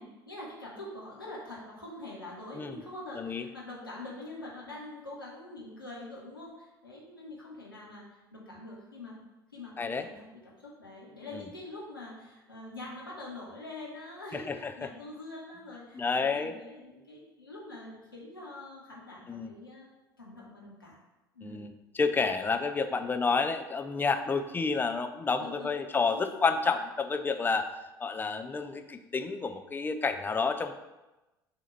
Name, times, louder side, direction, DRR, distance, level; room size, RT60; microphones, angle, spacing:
voice 1, 0.0-9.2 9.5-19.9 20.2-21.0 21.3-21.7 25.4-26.5, left 2 dB, 85° left, -5 dB, 1.5 m, -45 dB
voice 2, 9.8-10.1 11.3-11.4 14.3-14.9 15.9-16.6 19.3-19.5 21.4-27.7 28.0-30.7, left 4 dB, 15° left, 7 dB, 0.5 m, -30 dB
7.0 x 2.9 x 5.7 m, 1.0 s
figure-of-eight pair, 65°, 12 cm